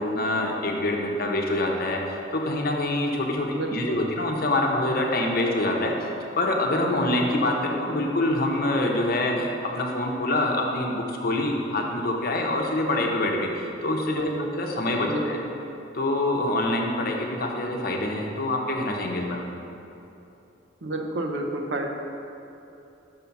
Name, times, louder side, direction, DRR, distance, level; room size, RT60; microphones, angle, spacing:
voice 1, 0.0-5.9 6.4-15.4 15.9-19.5, left 1 dB, 50° left, 1 dB, 0.8 m, -25 dB
voice 2, 3.5-4.1 14.2-14.6 15.0-15.5 20.8-21.9, right 1 dB, 65° right, 3 dB, 0.7 m, -30 dB
5.6 x 5.4 x 5.8 m, 2.9 s
head